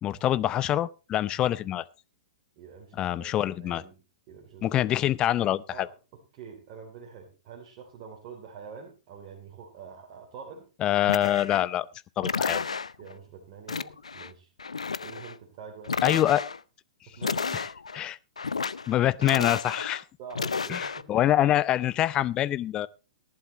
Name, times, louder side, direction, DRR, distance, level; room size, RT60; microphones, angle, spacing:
voice 1, 0.0-1.8 3.0-3.8 4.6-5.9 10.8-11.9 12.2-12.6 16.0-16.4 17.5-17.6 17.9-18.2 18.9-20.0 20.7-22.9, left 12 dB, 25° left, 0.7 m, -25 dB
voice 2, 2.6-4.0 4.3-4.8 5.7-10.7 13.0-14.5 15.0-16.0 17.1-17.5 20.2-21.3, right 6 dB, 35° right, 3.2 m, -45 dB
sound 1, 11.1-11.7 12.2-13.1 13.7-14.3 14.6-15.3 15.8-16.6 17.2-18.0 18.4-18.9 19.2-20.0 20.3-21.0, left 5 dB, 75° left, 0.6 m, -32 dB
18.0 x 11.5 x 3.1 m
figure-of-eight pair, 110°, 3 cm